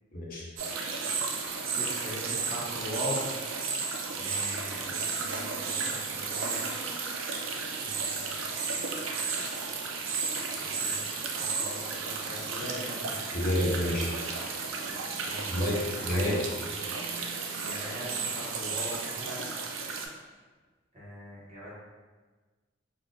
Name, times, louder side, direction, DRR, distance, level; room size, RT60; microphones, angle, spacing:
voice 1, 0.1-0.5 13.3-14.1 15.5-16.4, left 1 dB, 45° left, -3 dB, 0.6 m, -28 dB
sound 1, 0.6-20.1, right 4 dB, 75° right, 0.4 m, -33 dB
voice 2, 1.7-3.2 4.1-6.7 7.7-8.5 10.6-13.2 15.3-16.3 17.6-19.5 20.9-21.7, equal, 35° right, -8 dB, 1.0 m, -40 dB
4.0 x 2.4 x 2.3 m, 1.3 s
head